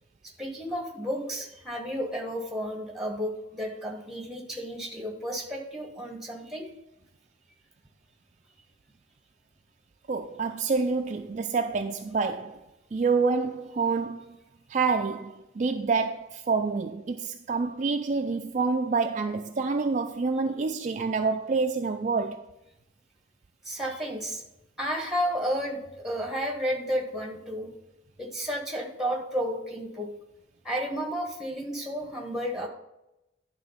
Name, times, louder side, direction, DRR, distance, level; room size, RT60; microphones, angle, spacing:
voice 1, 0.4-6.7 23.6-24.4 24.8-27.7 28.2-30.1 30.6-32.7, equal, ahead, 1.4 m, -32 dB
voice 2, 10.1-12.6 12.9-14.4 14.7-22.4, right 4 dB, 40° right, 0.3 m, -27 dB
10.5 x 3.7 x 5.7 m
head